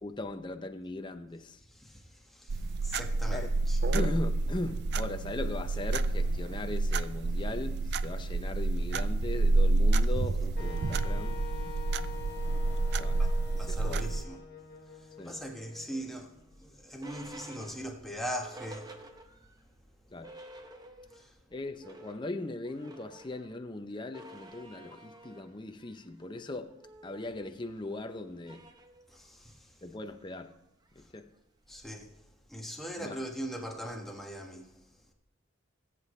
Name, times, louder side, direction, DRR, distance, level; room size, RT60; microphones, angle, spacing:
voice 1, 0.0-1.6 3.3-3.5 3.9-11.4 13.0-13.3 13.5-14.1 15.2-15.4 20.1-20.3 21.5-26.7 27.0-28.6 29.8-30.5 31.1-31.3 33.0-33.2, left 2 dB, 25° left, 0.6 m, -39 dB
voice 2, 1.7-3.8 13.2-13.3 13.6-14.4 15.0-16.3 16.6-18.9 21.1-21.3 29.1-29.8 31.7-32.1 32.5-34.7, equal, ahead, 1.4 m, -40 dB
sound 1, 2.5-14.2, right 2 dB, 55° right, 0.4 m, -29 dB
Wind instrument woodwind instrument, 10.6-16.4, left 5 dB, 50° left, 1.7 m, -45 dB
sound 2, 16.0-19.6 20.0-20.1 20.2-21.3 21.6-32.1, right 1 dB, 20° right, 0.8 m, -52 dB
19.5 x 8.4 x 3.2 m
head